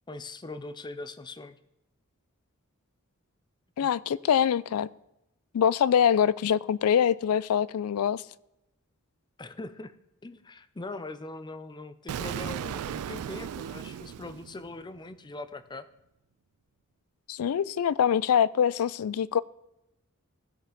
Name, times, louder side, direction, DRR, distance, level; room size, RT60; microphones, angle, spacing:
voice 1, 0.1-1.6 3.8-3.9 9.4-9.9 10.2-15.9, left 2 dB, 20° left, 0.5 m, -41 dB
voice 2, 3.8-4.9 5.5-8.2 17.3-19.4, left 8 dB, 80° left, 0.4 m, -24 dB
Explosion, 12.1-15.0, right 9 dB, 80° right, 0.3 m, -36 dB
16.0 x 5.4 x 3.8 m
head